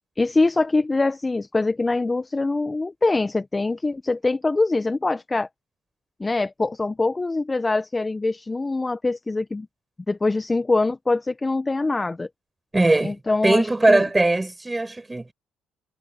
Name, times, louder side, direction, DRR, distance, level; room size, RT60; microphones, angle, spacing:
voice 1, 0.2-5.5 6.2-9.7 10.1-12.3 13.0-14.0, left 3 dB, 20° left, 1.4 m, -23 dB
voice 2, 12.7-13.2 13.4-15.3, right 2 dB, 15° right, 7.9 m, -20 dB
hypercardioid pair, 60°, 0 cm